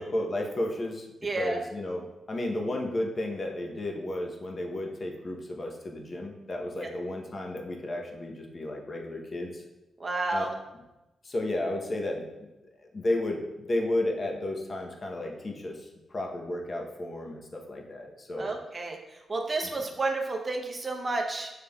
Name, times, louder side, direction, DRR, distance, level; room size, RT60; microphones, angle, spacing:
voice 1, 0.0-1.1 1.4-9.6 10.3-10.4 11.2-12.3 12.9-18.5, left 1 dB, 35° left, 1 dB, 0.7 m, -33 dB
voice 2, 1.2-1.6 10.0-10.5 18.4-21.5, right 2 dB, 30° right, 2 dB, 0.7 m, -31 dB
7.0 x 3.2 x 2.2 m, 1.0 s
cardioid pair, 100°, 0 cm